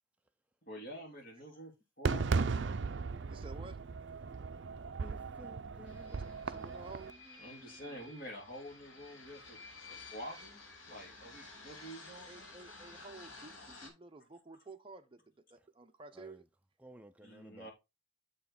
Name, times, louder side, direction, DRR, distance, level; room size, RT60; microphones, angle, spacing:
voice 1, 0.6-1.7 2.0-2.8 7.4-12.6 17.2-17.7, equal, 45° left, 3.4 m, -48 dB
Fireworks, 2.0-7.1, right 4 dB, 60° right, 0.5 m, -36 dB
voice 2, 3.3-3.8 6.1-7.2 12.2-16.4, right 3 dB, 25° right, 0.8 m, -52 dB
voice 3, 5.0-8.1 16.1-16.4 16.8-17.7, equal, 5° right, 0.4 m, -56 dB
sound 1, 5.8-13.9, left 3 dB, 75° left, 4.3 m, -53 dB
7.4 x 5.5 x 4.2 m
head